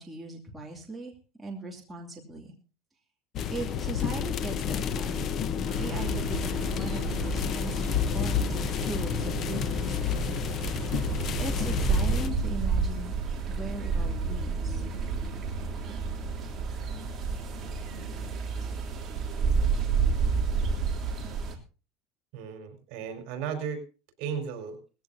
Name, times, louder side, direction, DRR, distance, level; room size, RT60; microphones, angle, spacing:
voice 1, 0.0-2.5 3.5-5.3 5.8-7.9 8.1-10.4 11.4-13.1 13.5-14.8, right 2 dB, 10° right, -2 dB, 2.7 m, -39 dB
sound 1, 3.4-12.3, left 7 dB, 35° left, 0.9 m, -30 dB
sound 2, 5.7-21.5, right 5 dB, 25° right, 3.2 m, -30 dB
voice 2, 22.3-23.8 24.2-24.8, right 7 dB, 60° right, 6 dB, 5.0 m, -35 dB
19.5 x 15.5 x 2.8 m, 0.35 s
cardioid pair, 150°, 0 cm